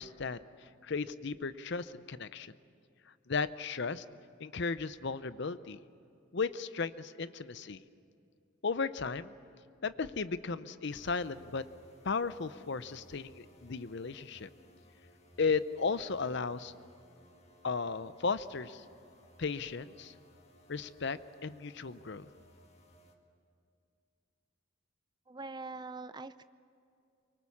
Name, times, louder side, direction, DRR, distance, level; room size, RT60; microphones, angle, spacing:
voice 1, 0.0-2.5 3.3-4.0 4.4-5.8 6.3-7.8 8.6-9.3 9.8-11.6 12.0-14.5 15.4-16.7 17.6-18.8 19.4-20.1 20.7-22.3, left 4 dB, 55° left, 14 dB, 0.6 m, -35 dB
sound 1, 10.9-23.2, equal, 30° left, 1.7 m, -61 dB
voice 2, 25.3-26.4, right 3 dB, 20° right, 13 dB, 0.5 m, -43 dB
25.0 x 24.0 x 7.2 m, 2.5 s
head